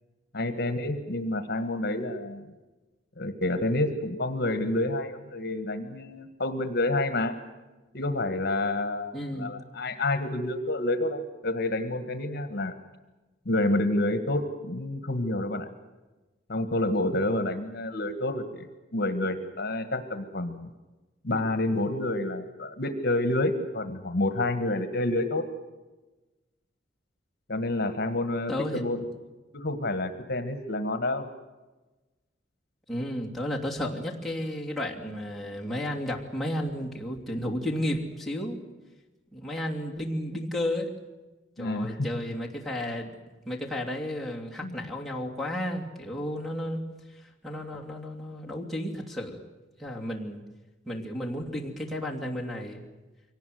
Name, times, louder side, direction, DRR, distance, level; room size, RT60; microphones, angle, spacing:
voice 1, 0.3-2.5 3.2-7.4 7.9-12.7 13.5-15.7 16.5-18.7 18.9-20.7 21.2-25.4 27.5-29.0 29.5-31.3 41.6-42.0 44.6-44.7, left 2 dB, 55° left, 9 dB, 1.7 m, -28 dB
voice 2, 9.1-9.5 28.5-28.8 32.9-38.6 39.3-40.9 41.6-43.1 43.4-46.8 47.1-49.4 49.8-50.4 50.9-52.9, left 1 dB, ahead, -3 dB, 2.8 m, -33 dB
23.5 x 18.5 x 9.3 m, 1.1 s
head